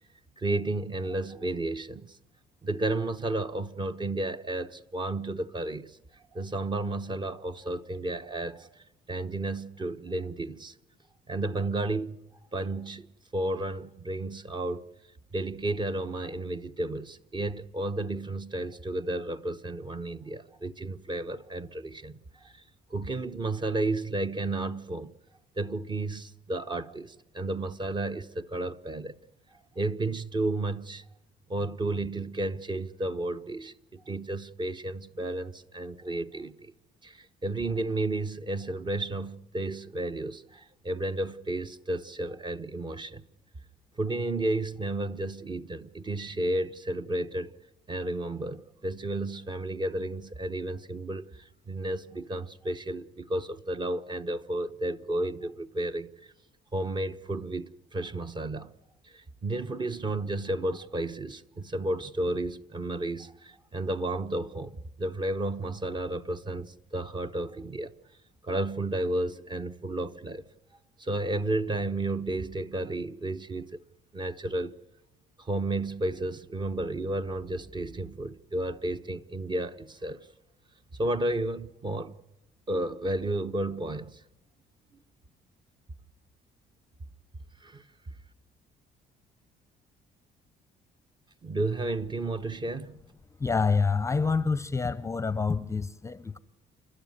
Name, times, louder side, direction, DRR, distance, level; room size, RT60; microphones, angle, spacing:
voice 1, 0.4-2.2 2.6-6.0 6.3-10.7 11.3-12.2 12.5-13.1 13.3-14.9 15.3-22.6 22.9-25.1 25.6-29.1 29.7-31.0 31.5-36.7 37.0-43.2 44.0-47.5 47.9-56.1 56.7-58.7 59.0-67.9 68.4-70.5 71.0-73.8 74.1-74.7 75.4-80.3 81.0-82.2 82.7-84.2 87.6-87.8 91.4-93.0, right 2 dB, 25° right, 1.0 m, -32 dB
voice 2, 93.4-96.4, left 4 dB, 15° left, 0.7 m, -27 dB
29.0 x 12.5 x 9.6 m
cardioid pair, 110°, 17 cm